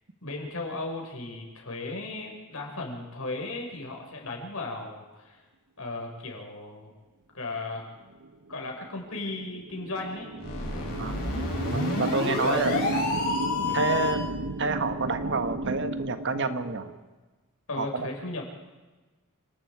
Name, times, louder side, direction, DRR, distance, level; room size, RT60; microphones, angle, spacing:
voice 1, 0.2-5.4 5.8-6.9 7.3-7.8 8.5-10.3 10.7-11.0 12.3-13.9 17.7-18.5, left 2 dB, 75° left, 1 dB, 5.4 m, -36 dB
sound 1, 8.2-17.0, right 2 dB, 90° right, 1.0 m, -34 dB
sound 2, 10.4-14.3, left 3 dB, 45° left, 6.9 m, -29 dB
voice 2, 11.7-12.7 13.7-14.2 14.6-16.9 17.8-18.1, right 3 dB, 55° right, 9 dB, 1.5 m, -28 dB
28.5 x 19.0 x 4.8 m, 1.2 s
head